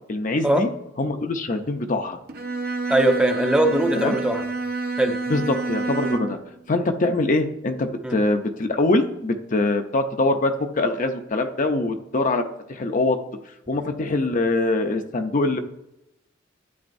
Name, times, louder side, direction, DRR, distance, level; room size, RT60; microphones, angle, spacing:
voice 1, 0.1-0.7 1.0-2.2 3.9-4.2 5.3-6.4 6.7-13.2 13.7-15.6, left 2 dB, 40° left, 6 dB, 0.6 m, -23 dB
Bowed string instrument, 2.3-6.5, right 3 dB, 50° right, 0.8 m, -28 dB
voice 2, 2.9-4.4 5.0-5.2 8.0-8.2, right 1 dB, 5° right, 4 dB, 0.6 m, -20 dB
12.0 x 8.7 x 2.6 m, 0.86 s
head